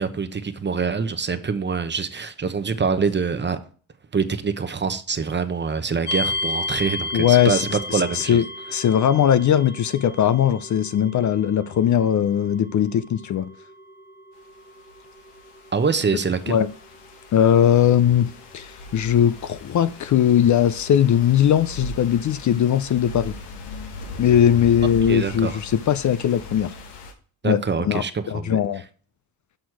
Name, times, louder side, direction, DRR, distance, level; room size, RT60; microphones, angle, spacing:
voice 1, 0.0-3.6 4.1-8.4 15.7-16.6 25.1-25.5 27.4-28.6, right 5 dB, 25° right, 0.9 m, -25 dB
sound 1, 6.1-20.9, left 2 dB, 25° left, 1.8 m, -35 dB
voice 2, 7.1-7.6 7.9-8.4 8.7-13.5 16.5-16.7 17.3-23.4 24.2-26.7 27.4-28.8, left 9 dB, 50° left, 0.5 m, -19 dB
sound 2, 14.8-27.1, left 2 dB, 90° left, 1.4 m, -39 dB
6.3 x 6.1 x 4.7 m
cardioid pair, 85°, 40 cm